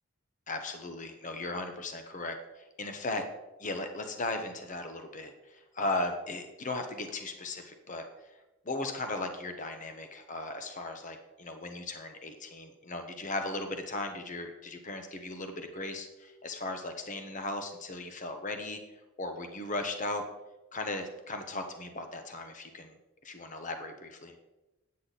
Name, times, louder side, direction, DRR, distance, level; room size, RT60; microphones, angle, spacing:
voice 1, 0.5-3.2 3.6-8.1 8.6-18.8 19.2-20.2 20.7-23.0 23.2-24.3, left 2 dB, 35° left, 6 dB, 0.9 m, -37 dB
9.6 x 8.5 x 4.1 m, 1.0 s
head